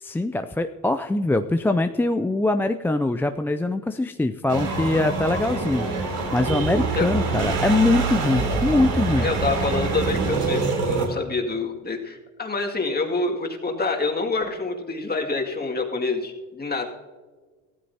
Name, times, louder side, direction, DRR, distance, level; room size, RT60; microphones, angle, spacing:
voice 1, 0.0-9.3, left 2 dB, 5° left, 7 dB, 0.3 m, -23 dB
sound 1, 4.5-11.1, right 3 dB, 65° right, 3.4 m, -25 dB
voice 2, 9.2-16.9, left 3 dB, 25° left, 1 dB, 2.2 m, -27 dB
15.5 x 13.0 x 2.8 m, 1.4 s
hypercardioid pair, 75°, 40 cm